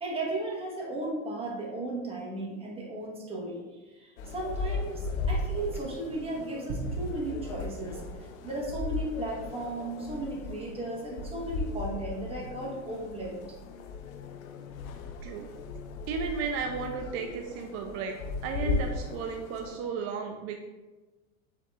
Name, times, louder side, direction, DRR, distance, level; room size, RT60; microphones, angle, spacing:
voice 1, 0.0-13.4, right 2 dB, 15° right, -4 dB, 1.1 m, -35 dB
sound 1, 4.2-19.8, left 3 dB, 90° left, 0.5 m, -37 dB
sound 2, 6.7-9.3, right 4 dB, 90° right, 0.6 m, -40 dB
voice 2, 16.1-18.2 18.4-20.6, right 5 dB, 40° right, 4 dB, 0.4 m, -34 dB
4.5 x 3.6 x 2.4 m, 1.2 s
hypercardioid pair, 105°, 40 cm